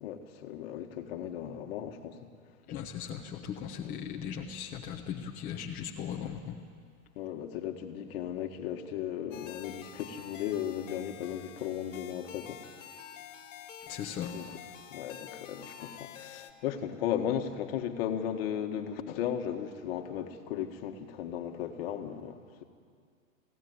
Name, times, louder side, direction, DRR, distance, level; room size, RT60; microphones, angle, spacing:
voice 1, 0.0-2.2 7.2-12.6 14.3-14.5 14.9-22.6, left 9 dB, 45° left, 5 dB, 1.9 m, -36 dB
voice 2, 2.7-6.6 13.9-14.3, left 8 dB, 20° left, 0 dB, 1.0 m, -38 dB
sound 1, 9.3-16.5, left 9 dB, 60° left, 1.9 m, -48 dB
21.5 x 16.5 x 9.7 m, 2.1 s
hypercardioid pair, 150°, 42 cm